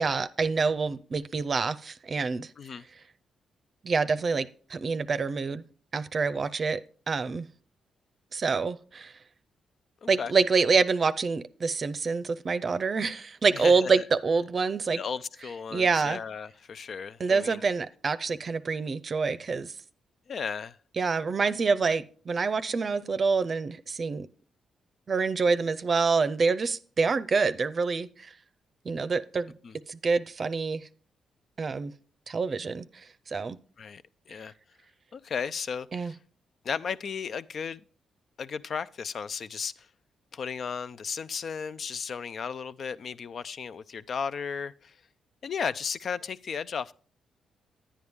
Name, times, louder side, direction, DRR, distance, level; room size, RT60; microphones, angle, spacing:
voice 1, 0.0-2.5 3.8-5.6 5.9-6.8 7.1-7.5 8.3-9.1 10.1-15.0 15.7-16.2 17.2-19.7 21.0-24.3 25.1-28.3 28.8-29.5 29.9-30.9 31.6-31.9 32.3-33.6 35.9-36.1, right 4 dB, 50° right, 0.5 m, -26 dB
voice 2, 10.0-10.3 13.5-14.0 15.0-17.6 20.3-20.8 29.6-29.7 33.8-34.5 35.1-36.2 36.6-37.8 38.4-39.9 40.3-45.0 45.4-46.9, left 6 dB, 60° left, 0.5 m, -35 dB
10.0 x 9.4 x 3.5 m
supercardioid pair, 55°, 0 cm